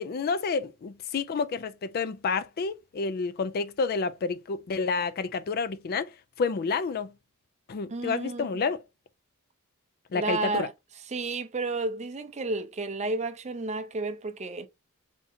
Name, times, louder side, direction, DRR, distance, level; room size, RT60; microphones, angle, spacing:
voice 1, 0.0-6.1 6.4-7.1 7.7-8.8 10.1-10.7, left 4 dB, 45° left, 0.4 m, -29 dB
voice 2, 7.9-8.5 10.1-10.7 11.1-14.7, right 3 dB, 30° right, 0.5 m, -31 dB
3.6 x 2.8 x 4.1 m
head